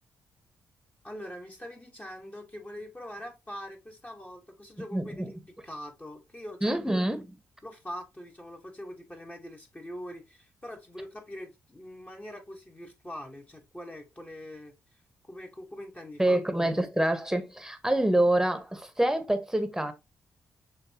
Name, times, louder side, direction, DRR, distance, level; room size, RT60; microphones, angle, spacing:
voice 1, 1.0-5.4 5.6-6.8 7.6-16.4, equal, 20° left, 1.4 m, -43 dB
voice 2, 4.9-5.3 6.6-7.4 16.2-19.9, right 1 dB, 5° right, 1.1 m, -26 dB
6.6 x 2.7 x 2.8 m
hypercardioid pair, 40°, 7 cm